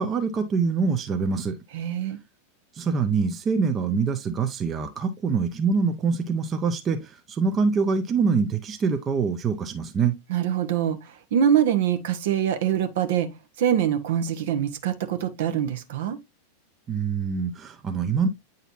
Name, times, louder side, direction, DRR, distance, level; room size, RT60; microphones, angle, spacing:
voice 1, 0.0-1.5 2.8-10.1 16.9-18.3, right 5 dB, 25° right, 0.8 m, -25 dB
voice 2, 1.7-2.2 10.3-13.3 13.6-16.2, right 9 dB, 55° right, 1.0 m, -24 dB
9.0 x 4.1 x 2.6 m
figure-of-eight pair, 90°, 0 cm